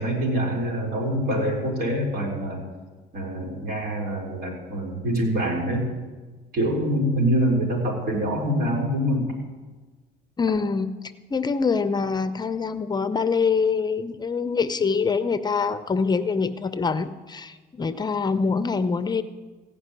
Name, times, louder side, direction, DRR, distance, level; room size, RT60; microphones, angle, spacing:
voice 1, 0.0-2.6 3.1-5.9 6.5-9.3, equal, 60° right, -2 dB, 4.1 m, -25 dB
voice 2, 10.4-11.0 11.3-19.2, left 5 dB, 25° left, 11 dB, 0.7 m, -24 dB
15.5 x 5.4 x 9.8 m, 1.3 s
cardioid pair, 110°, 17 cm